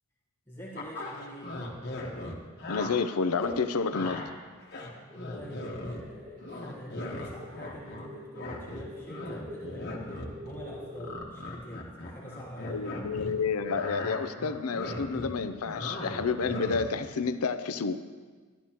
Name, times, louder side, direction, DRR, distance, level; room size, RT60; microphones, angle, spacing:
voice 1, 0.5-1.6 5.1-12.8, equal, 10° left, -6 dB, 1.2 m, -45 dB
sound 1, 0.7-2.9 3.4-3.6 3.9-4.3 4.6-6.1 6.4-8.1 8.3-13.3 13.6-17.0, left 2 dB, 50° left, 1.3 m, -38 dB
voice 2, 2.7-4.3 12.6-18.0, left 5 dB, 80° left, 11 dB, 0.5 m, -30 dB
sound 2, 5.1-11.2, left 1 dB, 35° right, 1.9 m, -46 dB
12.5 x 11.5 x 2.9 m, 1.5 s
head